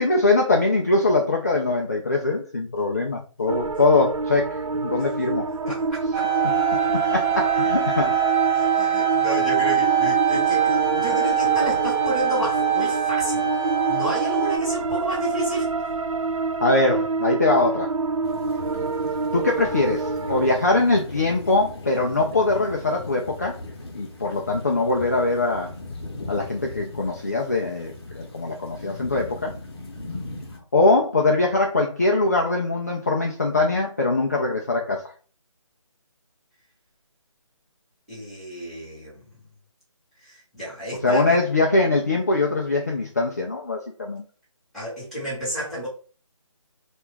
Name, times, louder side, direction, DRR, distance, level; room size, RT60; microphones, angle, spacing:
voice 1, 0.0-5.5 6.9-8.1 16.6-17.9 19.3-23.6 23.9-25.7 26.3-29.5 30.7-35.1 41.0-44.2, left 2 dB, 30° left, 0.3 m, -22 dB
sound 1, 3.5-20.5, right 4 dB, 80° right, 0.4 m, -27 dB
voice 2, 5.7-6.3 8.5-13.5 13.9-15.7 38.1-39.3 40.2-41.4 44.7-45.9, equal, ahead, 1.0 m, -31 dB
sound 2, 6.1-14.6, right 9 dB, 30° right, 0.8 m, -23 dB
sound 3, 18.2-30.6, left 2 dB, 50° left, 0.8 m, -38 dB
2.9 x 2.3 x 3.3 m
figure-of-eight pair, 165°, 17 cm